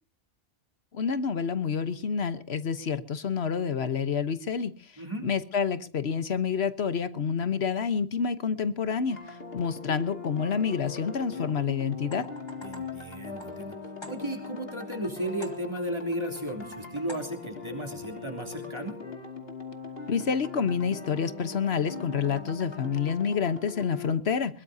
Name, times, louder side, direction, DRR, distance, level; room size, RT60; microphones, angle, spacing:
voice 1, 0.9-4.7 5.2-12.3 20.1-24.6, left 6 dB, 85° left, 12 dB, 1.3 m, -28 dB
voice 2, 5.0-5.3 12.6-13.8 14.1-19.0, right 1 dB, 25° right, 2 dB, 3.4 m, -35 dB
sound 1, 9.1-24.1, left 5 dB, 65° left, 2.7 m, -41 dB
sound 2, 12.0-14.6 15.4-16.0 17.1-17.6, left 1 dB, 25° left, 1.9 m, -48 dB
21.5 x 21.0 x 2.8 m, 0.40 s
omnidirectional pair, 1.1 m